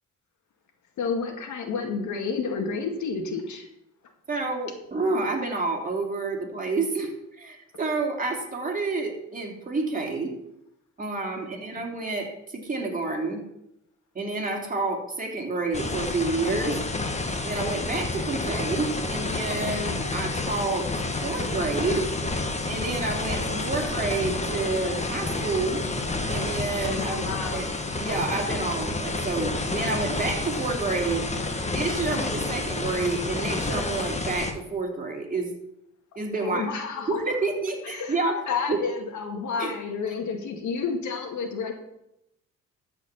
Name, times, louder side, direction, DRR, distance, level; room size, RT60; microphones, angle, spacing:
voice 1, 1.0-3.7 11.4-11.5 27.0-27.7 36.4-37.2 37.8-38.2 38.5-41.7, left 5 dB, 75° left, 4 dB, 2.0 m, -30 dB
voice 2, 4.3-10.4 11.0-13.4 14.1-16.8 17.4-22.1 22.7-25.8 26.3-27.2 27.5-27.7 27.9-31.2 31.7-35.5 36.1-36.8 37.1-38.8 39.6-39.7, right 3 dB, 30° right, 1 dB, 3.0 m, -29 dB
sound 1, 15.7-34.5, left 3 dB, 20° left, 1.4 m, -29 dB
13.0 x 5.1 x 7.2 m, 0.82 s
cardioid pair, 90°, 30 cm